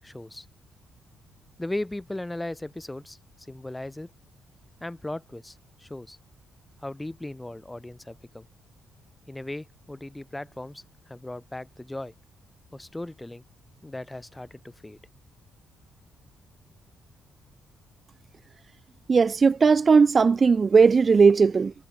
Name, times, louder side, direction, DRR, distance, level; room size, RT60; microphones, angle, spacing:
voice 1, 0.0-0.5 1.6-3.2 3.5-4.1 4.8-6.2 6.8-8.5 9.3-12.1 12.7-13.4 13.8-15.0, left 1 dB, 10° left, 3.2 m, -37 dB
voice 2, 19.1-21.7, right 5 dB, 35° right, 0.7 m, -18 dB
cardioid pair, 90°, 0 cm